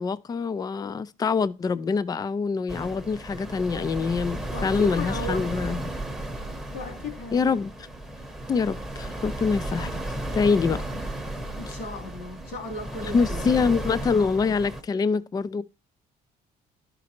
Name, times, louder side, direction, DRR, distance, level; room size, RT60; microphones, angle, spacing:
voice 1, 0.0-5.9 7.3-7.7 8.5-9.9 10.3-10.8 13.0-15.6, left 5 dB, 25° left, 0.4 m, -25 dB
sound 1, 2.7-14.8, right 1 dB, 5° right, 0.9 m, -34 dB
voice 2, 4.5-5.5 6.7-7.6 10.9-11.1 11.6-13.7, left 2 dB, 80° left, 3.0 m, -36 dB
11.5 x 5.2 x 2.8 m
cardioid pair, 110°, 17 cm